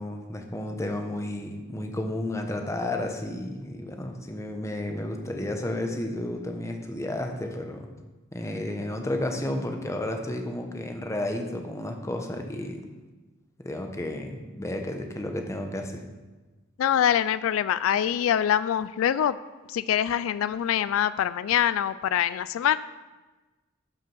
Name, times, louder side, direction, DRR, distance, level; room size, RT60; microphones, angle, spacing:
voice 1, 0.0-7.9 8.3-12.8 13.6-16.0, left 1 dB, 15° left, 4 dB, 0.9 m, -32 dB
voice 2, 16.8-19.4 19.7-22.8, left 9 dB, 75° left, 16 dB, 0.3 m, -24 dB
12.0 x 5.0 x 5.5 m, 1.2 s
head